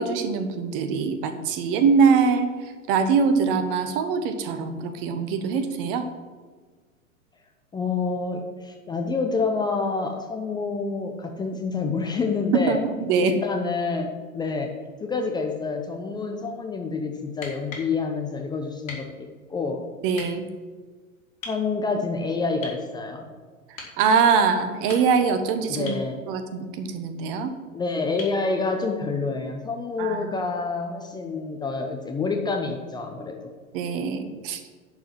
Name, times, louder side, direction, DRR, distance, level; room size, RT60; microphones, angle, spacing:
voice 1, 0.0-6.1 12.5-13.3 20.0-20.5 23.7-25.9 26.3-27.5 30.0-30.3 33.7-34.6, right 5 dB, 40° right, 9 dB, 1.1 m, -23 dB
voice 2, 7.7-12.8 13.2-14.7 15.0-19.8 21.4-23.3 25.7-26.2 27.7-33.5, left 4 dB, 10° left, 2 dB, 0.7 m, -28 dB
sound 1, 17.3-17.9 18.9-19.1 20.1-20.3 21.4-21.6 22.6-22.8 23.8-24.0 24.7-25.3 25.9-26.1 28.2-28.4 30.3-30.4, left 3 dB, 70° left, 3.4 m, -39 dB
11.0 x 4.8 x 7.5 m, 1.5 s
figure-of-eight pair, 95°, 42 cm